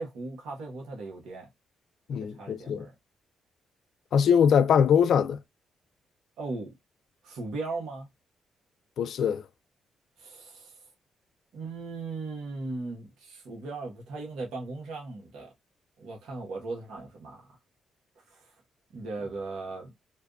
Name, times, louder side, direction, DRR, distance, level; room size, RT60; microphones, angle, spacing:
voice 1, 0.0-1.5 2.1-2.9 6.4-6.7 7.2-8.1 10.2-10.7 11.5-15.5 16.0-17.5 18.9-19.9, right 3 dB, 75° right, 1.0 m, -37 dB
voice 2, 2.1-2.9 4.1-5.4 9.0-9.4, left 7 dB, 70° left, 0.3 m, -22 dB
2.5 x 2.3 x 2.3 m
supercardioid pair, 55°, 0 cm